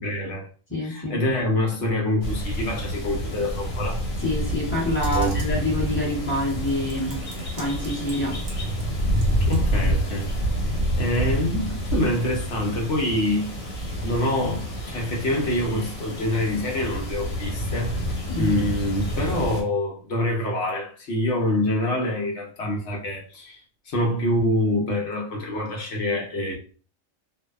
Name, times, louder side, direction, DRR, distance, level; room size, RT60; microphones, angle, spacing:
voice 1, 0.0-0.5 0.8-4.0 5.1-5.4 9.4-10.3 11.0-13.5 13.8-23.6 23.9-26.6, left 1 dB, 60° left, 1.0 m, -26 dB
voice 2, 0.7-1.2 4.2-7.2 7.6-8.4 18.3-18.7, left 1 dB, 10° left, 0.8 m, -27 dB
sound 1, 2.2-19.6, equal, 85° left, 1.3 m, -28 dB
Computer keyboard, 5.0-10.7, equal, 45° right, 0.7 m, -42 dB
2.6 x 2.0 x 2.3 m
omnidirectional pair, 1.4 m